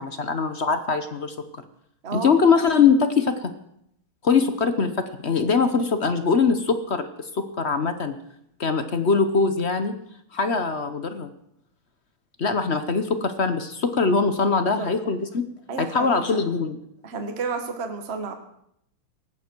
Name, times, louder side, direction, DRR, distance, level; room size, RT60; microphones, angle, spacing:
voice 1, 0.0-1.5 2.1-3.5 4.2-7.1 7.3-8.1 8.6-9.9 10.3-11.3 12.4-15.4 15.8-16.8, left 5 dB, 45° left, 9 dB, 0.9 m, -22 dB
voice 2, 15.7-16.4 17.0-18.3, right 4 dB, 35° right, 6 dB, 1.6 m, -31 dB
18.5 x 15.0 x 4.6 m, 0.75 s
omnidirectional pair, 2.2 m